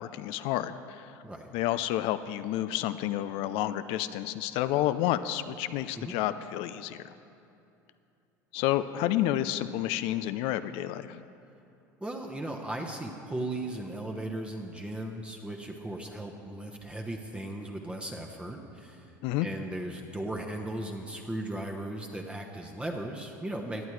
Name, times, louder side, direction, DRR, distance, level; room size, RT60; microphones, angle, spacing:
voice 1, 0.0-1.1 1.5-7.0 8.5-11.2 19.2-19.5, left 13 dB, 60° left, 12 dB, 0.4 m, -30 dB
voice 2, 12.0-19.1 19.4-23.8, right 1 dB, 10° right, 1 dB, 1.0 m, -37 dB
17.5 x 10.5 x 3.2 m, 2.7 s
hypercardioid pair, 75°, 10 cm